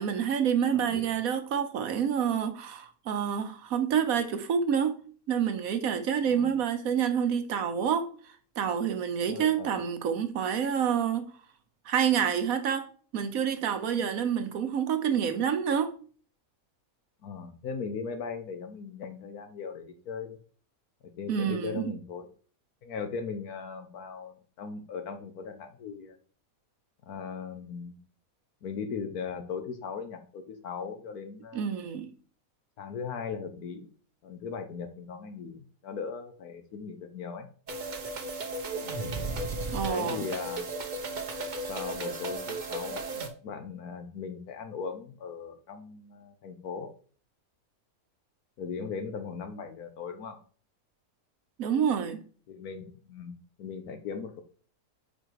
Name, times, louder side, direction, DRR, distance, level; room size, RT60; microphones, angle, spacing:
voice 1, 0.0-5.0 5.3-11.3 11.9-12.9 13.1-15.9 21.3-21.9 31.5-32.1 39.7-40.2 51.6-52.2, right 8 dB, 70° right, 1.2 m, -28 dB
voice 2, 0.7-1.1 6.3-6.5 9.3-9.8 17.2-20.4 21.2-22.3 22.8-26.2 27.0-28.0 28.6-31.6 32.8-33.9 34.2-37.5 39.8-40.6 41.6-43.0 43.4-46.9 48.6-50.4 52.5-54.4, left 5 dB, 80° left, 1.4 m, -38 dB
sound 1, 37.7-43.3, right 2 dB, 40° right, 0.7 m, -35 dB
4.9 x 4.5 x 4.6 m
omnidirectional pair, 1.6 m